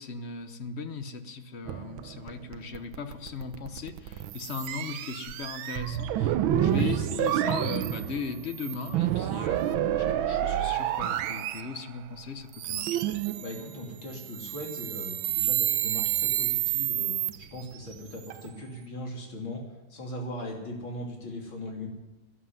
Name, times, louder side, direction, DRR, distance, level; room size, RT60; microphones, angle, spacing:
voice 1, 0.0-13.1, left 5 dB, 45° left, 9 dB, 0.9 m, -38 dB
sound 1, 1.7-12.0 12.5-18.8, right 12 dB, 85° right, 1.5 m, -29 dB
voice 2, 13.4-19.6 19.9-21.9, left 1 dB, 75° left, 1 dB, 3.9 m, -39 dB
13.5 x 10.0 x 9.5 m, 1.1 s
omnidirectional pair, 2.2 m